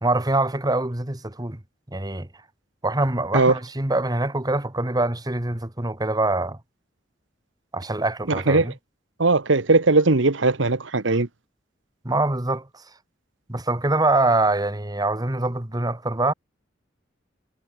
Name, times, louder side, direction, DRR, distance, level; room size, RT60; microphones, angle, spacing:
voice 1, 0.0-1.6 1.9-2.3 2.8-6.6 7.7-8.7 12.0-12.7 13.5-16.3, right 2 dB, 20° right, 1.6 m, -24 dB
voice 2, 8.3-8.7 9.2-11.3, right 3 dB, 90° right, 1.3 m, -19 dB
head